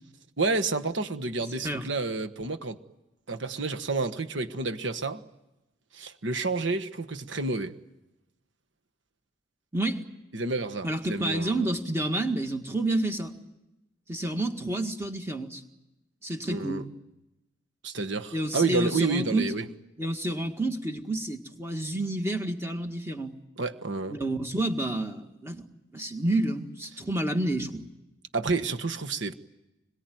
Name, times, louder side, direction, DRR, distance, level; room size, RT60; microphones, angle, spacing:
voice 1, 0.4-2.8 3.3-5.2 5.9-7.7 10.3-11.7 16.5-16.8 17.8-19.7 23.6-24.2 28.3-29.3, right 3 dB, 70° right, 1.4 m, -29 dB
voice 2, 1.5-1.9 9.7-10.0 10.8-13.3 14.1-15.6 16.2-16.9 18.3-19.5 20.0-23.3 24.1-27.9, right 1 dB, 15° right, 1.8 m, -29 dB
26.0 x 22.5 x 9.4 m
head